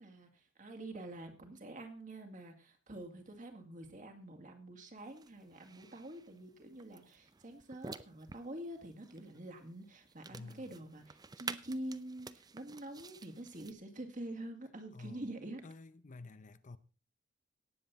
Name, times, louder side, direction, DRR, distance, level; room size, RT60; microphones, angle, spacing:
voice 1, 0.0-15.6, right 1 dB, 40° right, 2.2 m, -46 dB
sound 1, 5.0-13.7, right 4 dB, 20° right, 0.5 m, -51 dB
voice 2, 10.3-10.8 14.9-15.3 15.6-16.8, left 3 dB, 40° left, 0.6 m, -50 dB
18.0 x 7.7 x 4.1 m
head